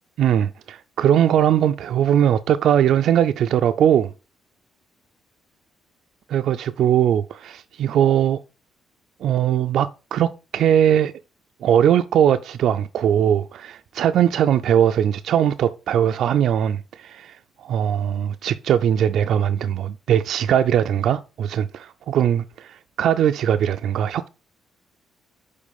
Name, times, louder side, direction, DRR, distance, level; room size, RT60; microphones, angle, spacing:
voice 1, 0.2-4.1 6.3-8.4 9.2-11.1 11.6-17.4 17.6-24.3, right 9 dB, 75° right, 0.3 m, -20 dB
5.1 x 4.1 x 5.3 m
cardioid pair, 90°, 0 cm